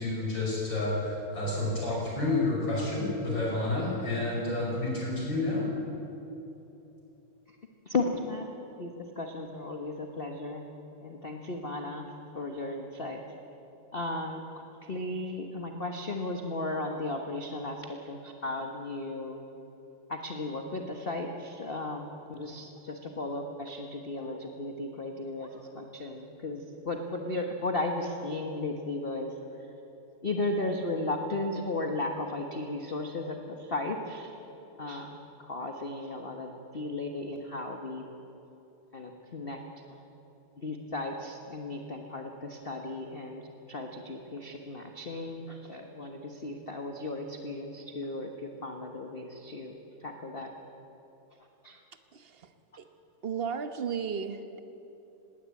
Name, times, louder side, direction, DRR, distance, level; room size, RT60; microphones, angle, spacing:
voice 1, 0.0-5.7, left 2 dB, 60° left, -3 dB, 6.3 m, -30 dB
voice 2, 7.8-8.5 8.8-10.6 11.0-12.1 12.3-13.2 13.9-14.4 14.8-19.4 20.1-29.3 30.2-34.3 34.8-38.1 38.9-40.0 40.6-50.5 51.6-51.8, left 2 dB, 30° left, 3 dB, 1.3 m, -35 dB
voice 3, 52.1-52.5 52.8-52.9 53.2-54.6, right 6 dB, 45° right, 9 dB, 0.8 m, -34 dB
20.5 x 17.5 x 8.4 m, 3.0 s
omnidirectional pair, 2.3 m